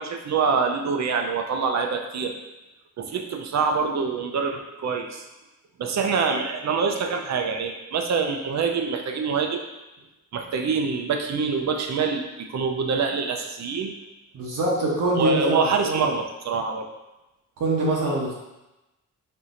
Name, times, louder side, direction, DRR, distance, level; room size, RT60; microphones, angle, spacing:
voice 1, 0.0-2.3 3.0-5.2 5.8-9.6 10.3-13.9 15.2-16.9, right 5 dB, 60° right, 4 dB, 0.5 m, -25 dB
voice 2, 14.3-16.0 17.6-18.3, right 2 dB, 75° right, -5 dB, 0.9 m, -24 dB
4.3 x 2.7 x 2.5 m, 1.0 s
cardioid pair, 75°, 32 cm